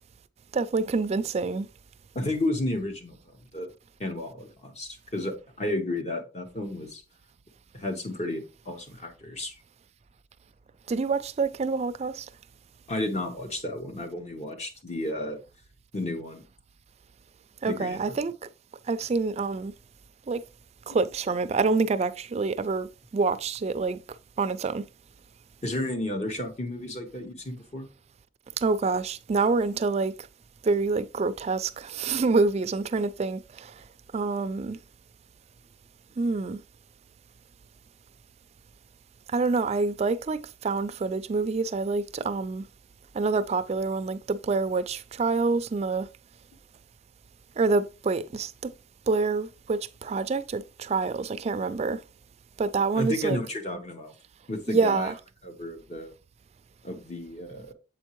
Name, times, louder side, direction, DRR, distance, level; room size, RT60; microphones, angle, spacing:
voice 1, 0.5-1.7 10.9-12.3 17.6-18.3 18.9-19.7 20.3-20.4 20.9-24.0 24.4-24.9 28.6-30.1 30.6-33.8 34.1-34.8 36.2-36.6 39.3-42.7 43.1-46.1 47.6-48.7 49.1-52.0 52.6-53.4 54.7-55.1, right 4 dB, 35° right, 0.3 m, -27 dB
voice 2, 2.1-3.7 4.0-7.0 7.7-9.5 12.9-15.4 15.9-16.4 17.6-18.2 25.6-27.9 52.9-54.1 54.5-55.1 55.4-56.1 56.8-57.7, left 1 dB, 40° left, 1.0 m, -32 dB
7.4 x 4.4 x 3.0 m
head